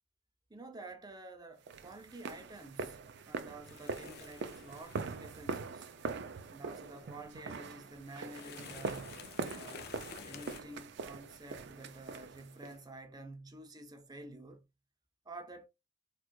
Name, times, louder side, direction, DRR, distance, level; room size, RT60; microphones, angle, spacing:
voice 1, 0.5-5.9 6.5-9.2 9.5-9.9 10.2-14.6 15.3-15.7, right 2 dB, 20° right, 0.7 m, -50 dB
sound 1, 1.7-12.8, right 4 dB, 65° right, 0.4 m, -43 dB
sound 2, 3.6-10.6, left 6 dB, 55° left, 0.5 m, -52 dB
4.4 x 2.3 x 2.3 m
head